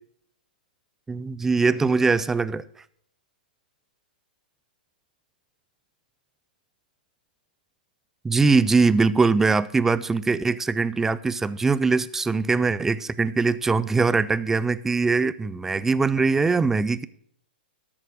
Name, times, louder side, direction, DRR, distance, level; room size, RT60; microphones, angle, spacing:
voice 1, 1.1-2.6 8.2-17.1, right 4 dB, 5° right, 0.4 m, -22 dB
13.0 x 8.7 x 5.0 m
hypercardioid pair, 145°, 5 cm